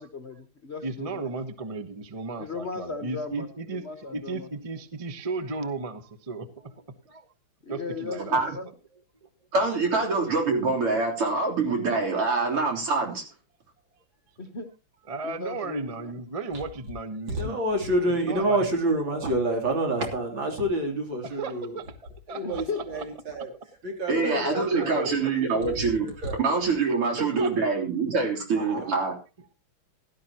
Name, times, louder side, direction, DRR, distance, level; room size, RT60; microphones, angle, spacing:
voice 1, 0.0-1.3 2.4-3.5 3.7-4.5 7.6-8.7 14.4-14.7 15.2-16.1 22.4-22.8 24.1-24.9 25.2-25.3, left 4 dB, 40° left, 7 dB, 1.1 m, -36 dB
voice 2, 0.8-7.3 7.7-8.4 9.2-9.3 15.1-17.6 18.1-18.6 21.4-21.8 22.3-22.8 23.3-23.6 24.7-25.3 27.2-27.5, right 3 dB, 25° right, 10 dB, 0.7 m, -35 dB
voice 3, 9.5-13.2 24.1-26.1 26.4-29.1, right 4 dB, 85° right, 0 dB, 4.5 m, -25 dB
voice 4, 17.3-21.8 22.3-23.5 23.8-26.6 28.6-29.0, right 1 dB, 60° right, 2 dB, 3.9 m, -28 dB
17.0 x 12.5 x 2.9 m, 0.30 s
omnidirectional pair, 2.4 m